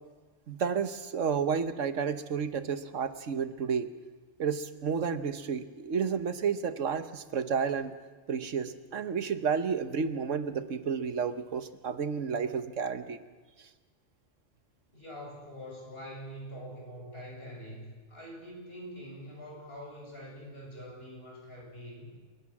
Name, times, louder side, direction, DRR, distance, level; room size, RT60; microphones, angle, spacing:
voice 1, 0.5-3.9 4.4-7.9 8.3-13.2, right 6 dB, 90° right, 11 dB, 1.5 m, -31 dB
voice 2, 14.9-22.1, equal, 55° left, -2 dB, 8.0 m, -44 dB
28.5 x 18.0 x 7.3 m, 1.4 s
omnidirectional pair, 1.3 m